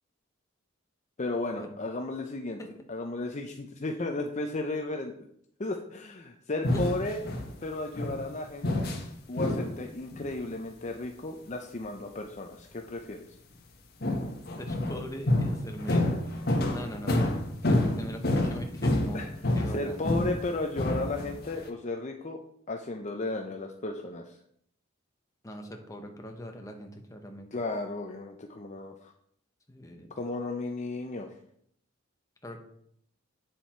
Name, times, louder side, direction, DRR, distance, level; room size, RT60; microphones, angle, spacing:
voice 1, 1.2-2.6 2.9-5.1 5.6-7.2 7.6-8.9 9.3-13.3 19.1-19.3 19.7-22.4 22.7-24.4 27.5-29.1 30.2-31.3, left 2 dB, 35° left, 3 dB, 0.7 m, -34 dB
sound 1, 6.6-7.5 7.9-8.2 8.6-9.1 9.4-9.8 10.1-10.3 14.0-20.5 20.8-21.5, left 1 dB, 55° left, 1.5 m, -28 dB
voice 2, 14.6-16.1 16.7-20.1 25.4-27.5 29.7-30.1 32.4-32.6, equal, 15° left, 3 dB, 1.3 m, -41 dB
9.2 x 6.9 x 4.5 m, 0.69 s
head